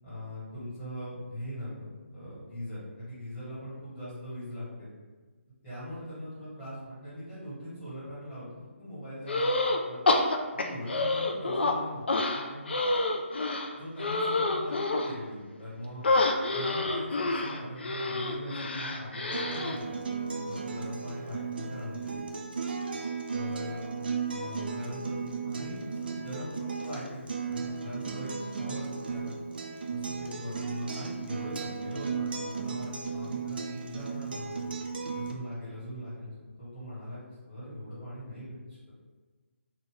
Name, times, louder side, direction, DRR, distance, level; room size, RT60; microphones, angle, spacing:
voice 1, 0.0-4.9 5.6-9.6 9.8-10.1 10.5-13.0 13.8-16.0 16.5-22.3 23.3-29.3 29.9-34.6 35.1-38.8, equal, 15° left, -13 dB, 1.4 m, -41 dB
sound 1, 9.3-9.8 10.1-11.7 12.1-15.1 16.0-19.8, left 2 dB, 55° left, 0.3 m, -28 dB
Acoustic guitar, 19.3-35.3, right 5 dB, 45° right, 0.4 m, -35 dB
2.9 x 2.2 x 3.5 m, 1.4 s
figure-of-eight pair, 145°, 7 cm